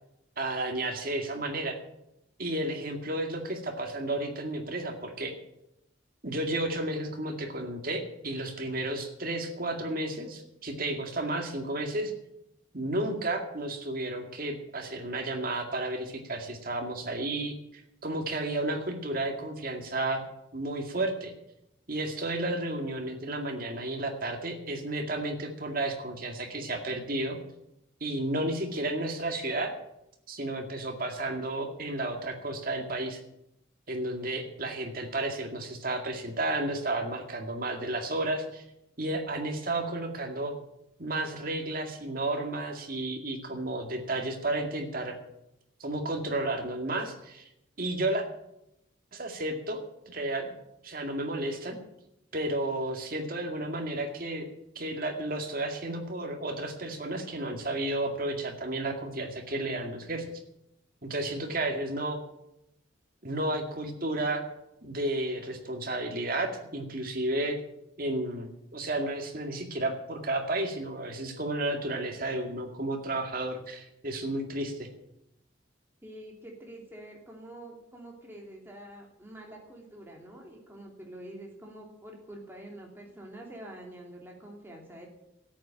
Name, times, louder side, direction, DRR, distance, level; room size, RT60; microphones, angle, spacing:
voice 1, 0.4-1.8 2.4-5.3 6.2-12.1 12.7-20.2 20.5-21.3 21.9-27.4 28.0-29.7 30.3-33.2 33.9-38.6 39.0-40.5 41.0-45.2 45.8-47.5 47.8-48.3 49.1-49.8 50.1-50.5 50.8-51.8 52.3-54.5 54.8-60.2 61.0-62.2 63.2-64.4 64.8-67.6 68.0-74.9, right 1 dB, 45° right, 4 dB, 2.2 m, -32 dB
voice 2, 76.0-85.1, right 1 dB, 10° right, -1 dB, 3.0 m, -46 dB
13.0 x 8.8 x 8.9 m, 0.83 s
head